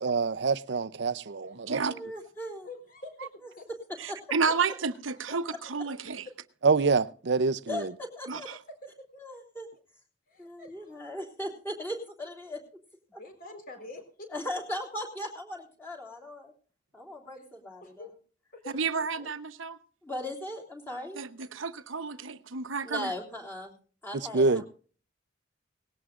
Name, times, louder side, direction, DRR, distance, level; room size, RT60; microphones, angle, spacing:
voice 1, 0.0-1.8 6.6-7.9 24.3-24.6, right 4 dB, 60° right, 0.6 m, -26 dB
voice 2, 1.9-2.7 4.1-4.2 7.7-7.8 8.2-8.5 9.2-9.7 10.4-12.6 14.3-16.5 16.9-17.8 18.9-19.3 20.0-21.2 22.8-23.7 24.0-24.8, left 1 dB, 10° left, 3.4 m, -38 dB
voice 3, 2.6-3.7 5.3-5.4 8.4-9.2 10.3-11.2 13.2-14.3 17.3-17.5 17.8-18.1 18.5-18.8, left 2 dB, 45° left, 4.1 m, -47 dB
voice 4, 4.0-5.4 5.7-6.2 8.3-8.4 18.7-19.8 21.1-23.1, right 5 dB, 90° right, 0.9 m, -31 dB
19.0 x 17.5 x 2.5 m
head